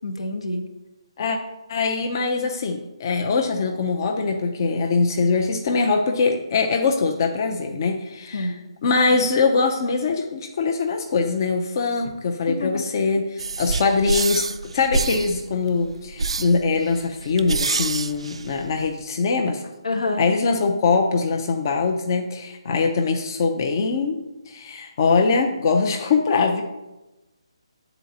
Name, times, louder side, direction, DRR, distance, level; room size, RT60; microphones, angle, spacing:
voice 1, 0.0-0.6 8.3-8.6 12.5-12.9 19.8-20.3, left 2 dB, 80° left, 5 dB, 0.9 m, -27 dB
voice 2, 1.7-8.5 8.8-19.6 20.2-26.6, left 4 dB, 40° left, 3 dB, 0.5 m, -22 dB
sound 1, 13.4-19.0, right 4 dB, 75° right, 0.3 m, -27 dB
8.9 x 3.9 x 2.7 m, 1.0 s
hypercardioid pair, 160°, 3 cm